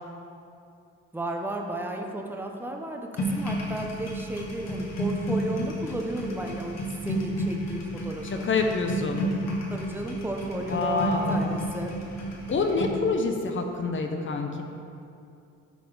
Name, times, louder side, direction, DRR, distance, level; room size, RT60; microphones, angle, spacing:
voice 1, 1.1-6.8 7.0-8.5 9.7-11.9, right 1 dB, 5° right, 2 dB, 0.9 m, -33 dB
sound 1, 3.2-12.9, equal, 60° left, 1.9 m, -31 dB
voice 2, 8.2-9.3 10.7-11.6 12.5-14.6, left 3 dB, 40° left, 4 dB, 0.8 m, -27 dB
11.5 x 4.1 x 5.0 m, 2.6 s
cardioid pair, 90°, 30 cm